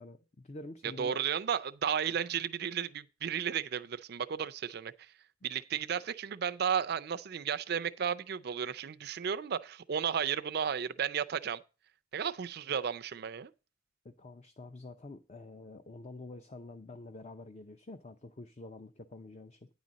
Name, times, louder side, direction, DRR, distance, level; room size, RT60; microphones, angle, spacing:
voice 1, 0.0-1.2 14.0-19.7, left 2 dB, 35° left, 0.6 m, -47 dB
voice 2, 1.0-5.1 5.4-11.6 12.1-13.5, right 7 dB, 55° right, 0.4 m, -33 dB
9.6 x 4.0 x 7.4 m
head